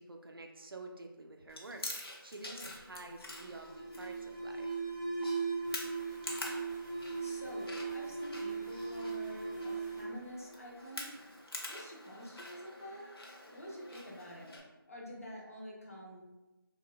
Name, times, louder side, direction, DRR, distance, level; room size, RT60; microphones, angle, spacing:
voice 1, 0.0-4.8, right 2 dB, 70° right, 3 dB, 0.4 m, -49 dB
Chewing mastication, 1.5-14.6, left 1 dB, 85° left, 0.6 m, -47 dB
Alarm, 2.6-11.2, right 4 dB, 20° right, 0.6 m, -39 dB
voice 2, 7.2-11.1 11.7-16.2, equal, 35° left, -3 dB, 0.5 m, -48 dB
2.8 x 2.1 x 2.3 m, 1.1 s
figure-of-eight pair, 170°, 12 cm